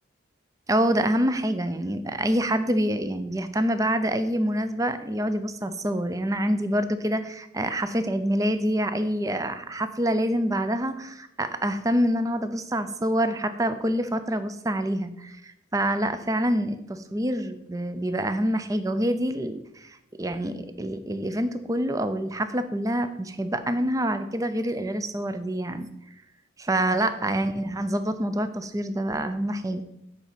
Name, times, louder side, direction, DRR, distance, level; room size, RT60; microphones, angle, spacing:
voice 1, 0.7-25.9 26.6-29.8, right 1 dB, 15° right, 10 dB, 0.5 m, -26 dB
8.8 x 4.1 x 7.2 m, 0.84 s
head